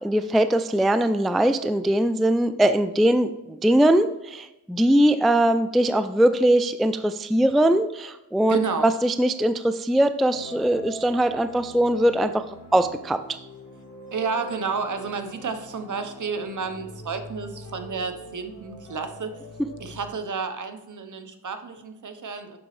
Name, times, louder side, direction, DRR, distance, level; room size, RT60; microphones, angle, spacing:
voice 1, 0.0-12.4 12.7-13.4, right 1 dB, ahead, 10 dB, 0.3 m, -21 dB
voice 2, 8.5-8.9 14.1-19.3 19.8-22.6, right 5 dB, 55° right, 8 dB, 1.0 m, -31 dB
sound 1, 10.3-20.1, equal, 45° left, 2.4 m, -43 dB
7.2 x 6.0 x 3.2 m, 0.96 s
cardioid pair, 65°, 37 cm